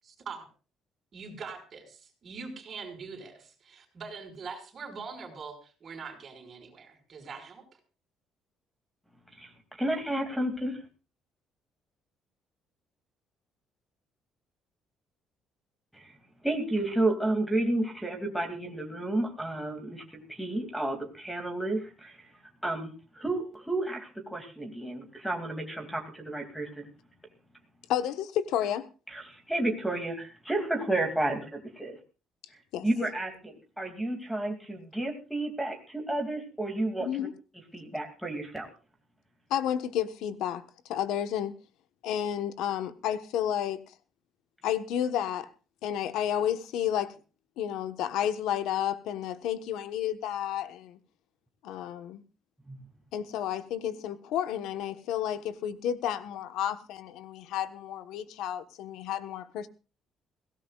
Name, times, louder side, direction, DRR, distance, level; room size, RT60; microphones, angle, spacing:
voice 1, 0.0-0.5 1.1-7.6, right 5 dB, 35° right, 5.7 m, -43 dB
voice 2, 9.8-10.8 16.4-22.3 22.6-26.9 29.1-31.9 32.8-37.3 37.7-38.7 52.7-52.8, right 1 dB, ahead, 2.7 m, -31 dB
voice 3, 27.9-28.9 32.7-32.8 37.0-37.3 39.5-41.5 42.0-43.9 44.6-45.5 45.8-47.1 47.6-51.0 51.6-52.2 53.1-59.7, left 10 dB, 85° left, 1.3 m, -31 dB
22.0 x 17.5 x 2.5 m
cardioid pair, 170°, 0 cm